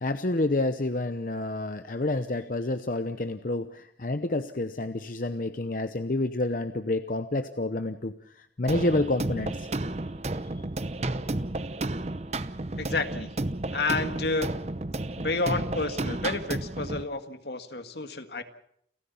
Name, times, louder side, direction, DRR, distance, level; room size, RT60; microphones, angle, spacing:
voice 1, 0.0-9.7, left 2 dB, 50° left, 10 dB, 0.8 m, -29 dB
sound 1, 8.7-17.0, right 2 dB, 35° right, 0.8 m, -32 dB
voice 2, 12.8-13.3 13.7-14.5 15.2-18.4, left 3 dB, 70° left, 8 dB, 1.8 m, -30 dB
29.0 x 14.5 x 7.1 m, 0.70 s
head